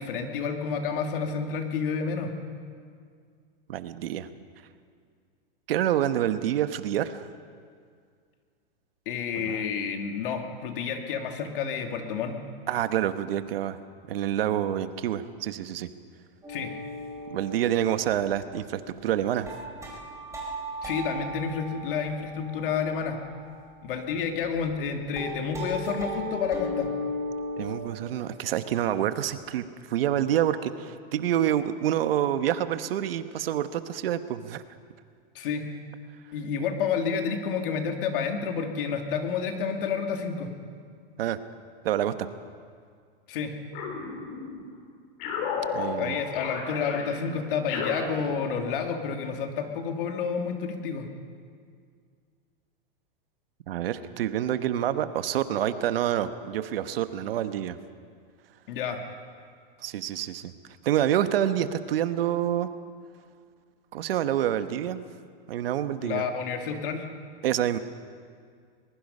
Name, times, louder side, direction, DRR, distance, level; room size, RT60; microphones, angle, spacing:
voice 1, 0.0-2.3 9.1-12.4 16.5-16.7 20.8-23.2 23.8-26.9 35.3-35.7 36.3-40.5 43.3-43.5 46.0-51.1 58.7-59.0 66.0-67.0, left 6 dB, 65° left, 4 dB, 2.7 m, -30 dB
voice 2, 3.7-4.3 5.7-7.3 9.4-9.7 12.7-13.8 14.1-15.9 17.3-19.5 27.6-34.6 41.2-41.4 41.8-42.3 45.7-46.2 53.7-57.8 59.8-60.5 60.8-62.7 63.9-65.0 65.5-66.2 67.4-67.8, right 11 dB, 75° right, 10 dB, 1.2 m, -27 dB
sound 1, 16.4-24.9 25.1-27.8, equal, 10° right, 4.9 m, -37 dB
sound 2, 43.7-44.7 45.2-48.8, left 4 dB, 50° left, 4.0 m, -34 dB
22.5 x 21.0 x 5.5 m, 2.1 s
supercardioid pair, 155°, 29 cm